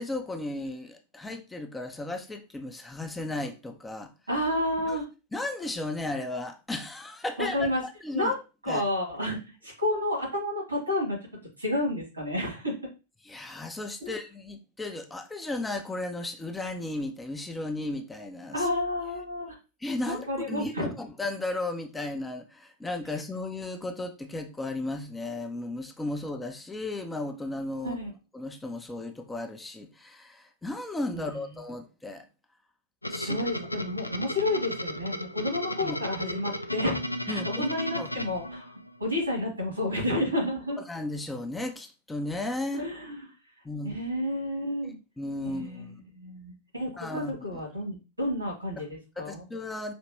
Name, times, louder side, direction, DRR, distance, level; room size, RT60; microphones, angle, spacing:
voice 1, 0.0-4.1 4.9-5.0 5.3-8.3 8.7-8.8 13.2-18.7 19.8-28.0 28.3-32.2 33.1-33.4 33.7-33.8 35.8-36.0 37.3-37.7 38.0-38.1 40.9-42.8 43.6-44.0 44.8-46.0 47.0-47.6 48.8-48.9 49.2-49.9, left 2 dB, 10° left, 0.6 m, -35 dB
voice 2, 4.3-5.1 7.4-7.8 8.1-8.4 8.6-11.2 11.6-12.8 14.0-14.1 18.5-19.6 20.1-20.9 27.8-28.1 31.1-31.4 33.2-37.0 37.3-38.7 39.0-40.8 42.7-43.3 43.8-45.0 45.4-49.4, left 1 dB, 85° right, 2.6 m, -30 dB
sound 1, 33.0-39.0, left 1 dB, 85° left, 0.4 m, -35 dB
5.2 x 2.9 x 3.0 m
figure-of-eight pair, 90°, 0 cm